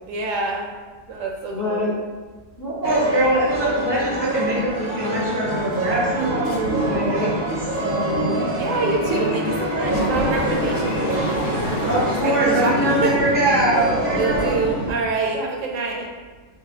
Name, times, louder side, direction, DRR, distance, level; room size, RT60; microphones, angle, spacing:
voice 1, 0.1-0.7 1.1-1.8 8.6-11.5 12.0-13.1 14.1-16.1, right 3 dB, 75° right, 0 dB, 1.0 m, -26 dB
voice 2, 1.5-1.9 2.6-8.4 9.1-9.4 11.9-14.9, right 1 dB, 20° left, -8 dB, 0.7 m, -23 dB
sound 1, 2.8-14.6, right 1 dB, 55° right, 0.7 m, -26 dB
sound 2, 5.1-15.5, left 2 dB, 80° left, 0.4 m, -38 dB
sound 3, 9.8-14.9, equal, 45° left, 1.1 m, -28 dB
3.9 x 2.8 x 2.7 m, 1.3 s
omnidirectional pair, 1.4 m